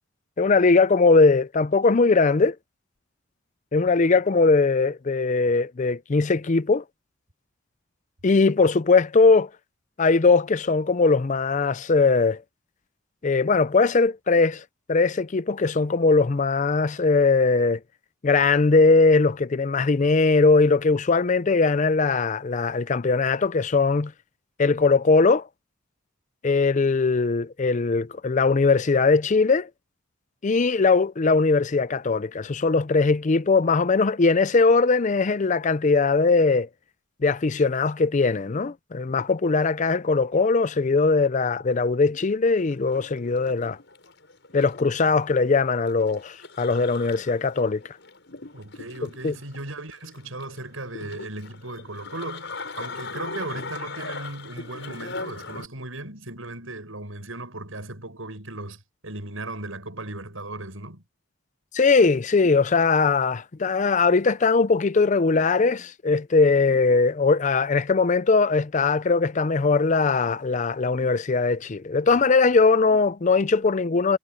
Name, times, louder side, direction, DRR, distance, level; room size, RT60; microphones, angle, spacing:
voice 1, 0.4-2.6 3.7-6.8 8.2-9.5 10.0-12.4 13.2-14.6 14.9-17.8 18.2-24.1 24.6-25.5 26.4-29.7 30.4-36.7 37.2-43.8 44.5-47.8 49.0-49.3 61.7-74.2, left 4 dB, 35° left, 0.5 m, -20 dB
sound 1, 42.5-55.7, left 3 dB, 60° left, 7.8 m, -40 dB
voice 2, 48.5-61.0, right 2 dB, 80° right, 7.1 m, -37 dB
head